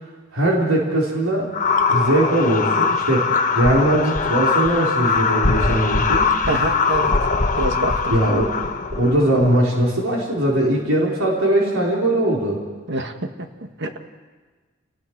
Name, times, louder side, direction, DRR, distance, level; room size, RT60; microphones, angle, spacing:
voice 1, 0.3-1.5 1.9-6.3 8.1-8.5 9.0-12.6, right 1 dB, 80° right, -3 dB, 4.2 m, -20 dB
sound 1, 1.5-9.6, left 4 dB, 40° left, 1.2 m, -21 dB
voice 2, 6.4-7.1 7.6-8.1 12.9-13.3 13.8-13.9, right 2 dB, 60° right, 6 dB, 1.7 m, -25 dB
29.5 x 19.5 x 4.7 m, 1.4 s
head